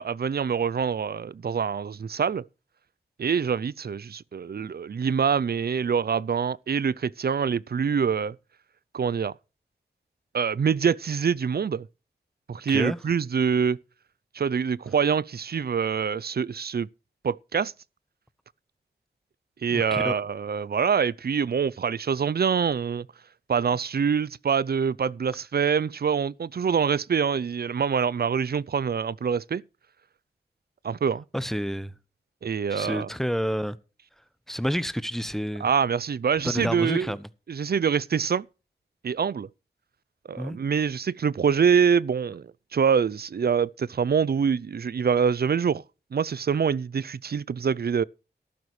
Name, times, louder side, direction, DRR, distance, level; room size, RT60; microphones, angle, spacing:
voice 1, 0.0-2.4 3.2-8.4 8.9-9.3 10.3-11.9 12.5-13.8 14.3-16.9 17.2-17.7 19.6-23.1 23.5-29.6 30.8-31.2 32.4-33.1 35.6-37.1 37.5-38.5 39.0-39.5 40.3-45.8 46.1-48.0, right 6 dB, 60° right, 0.5 m, -25 dB
voice 2, 19.7-20.2 31.3-31.9 32.7-33.8 34.5-35.6 36.4-37.3 40.3-40.6, equal, ahead, 1.0 m, -29 dB
14.0 x 12.0 x 3.3 m
cardioid pair, 50°, 18 cm